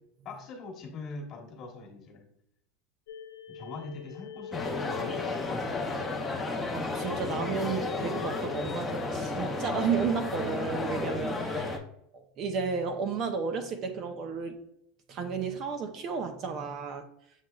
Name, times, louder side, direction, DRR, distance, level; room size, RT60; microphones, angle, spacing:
voice 1, 0.2-2.3 3.5-6.2, left 4 dB, 35° left, 0 dB, 1.1 m, -42 dB
sound 1, 3.1-11.2, left 5 dB, 70° left, 0.9 m, -42 dB
sound 2, 4.5-11.8, left 3 dB, 10° left, 0.6 m, -33 dB
voice 2, 6.7-11.8 12.1-14.6 15.1-17.1, right 6 dB, 35° right, 6 dB, 0.5 m, -33 dB
7.3 x 2.9 x 2.3 m, 0.74 s
supercardioid pair, 155°, 0 cm